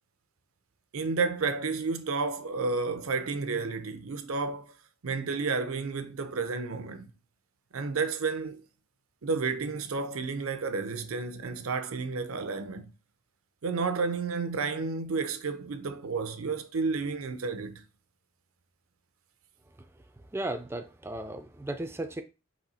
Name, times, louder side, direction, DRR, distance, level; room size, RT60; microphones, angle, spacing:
voice 1, 0.9-4.7 5.0-7.1 7.7-8.6 9.2-12.9 13.6-17.8, right 4 dB, 85° right, 0.6 m, -31 dB
voice 2, 20.3-22.2, right 1 dB, 10° right, 0.3 m, -35 dB
4.1 x 2.8 x 4.1 m
head